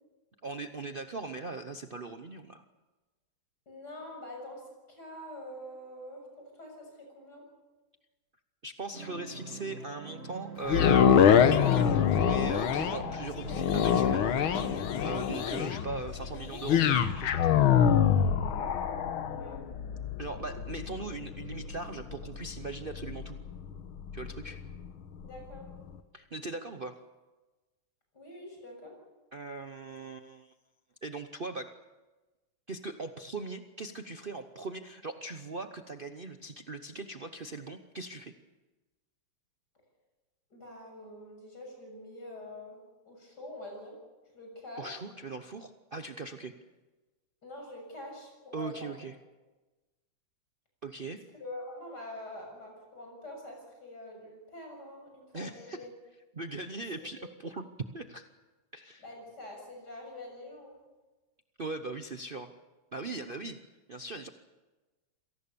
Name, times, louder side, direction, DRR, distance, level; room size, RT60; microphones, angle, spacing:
voice 1, 0.4-2.6 8.6-17.6 20.2-23.4 24.1-24.6 26.1-27.0 29.3-30.5 31.0-31.8 32.7-38.3 44.8-46.5 48.5-49.2 50.8-51.2 55.3-55.8 56.3-57.7 57.9-58.3 58.7-59.0 61.6-62.5 62.9-63.6 63.9-64.3, right 3 dB, 80° right, 8 dB, 0.4 m, -40 dB
voice 2, 3.7-7.4 19.1-19.6 25.2-25.6 28.1-28.9 40.5-42.8 43.1-43.9 44.3-45.0 47.4-49.0 51.4-55.9 57.0-57.3 59.0-60.8, left 1 dB, 45° left, 1 dB, 7.8 m, -45 dB
sound 1, 8.9-14.8, right 3 dB, 30° right, 2.2 m, -44 dB
sound 2, 10.6-24.9 25.4-25.5, left 8 dB, 70° left, 1.8 m, -26 dB
27.0 x 18.5 x 6.9 m, 1.2 s
omnidirectional pair, 2.4 m